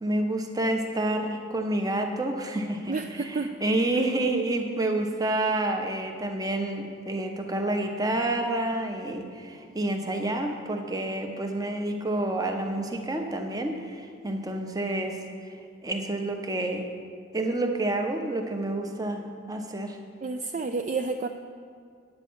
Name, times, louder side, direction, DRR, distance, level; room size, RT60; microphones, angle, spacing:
voice 1, 0.0-15.5 15.8-16.9 17.3-20.0, right 1 dB, 20° right, 4 dB, 0.7 m, -29 dB
voice 2, 2.9-3.6 3.9-4.1 20.2-21.3, right 4 dB, 35° right, 5 dB, 0.3 m, -30 dB
9.6 x 8.3 x 6.2 m, 2.2 s
head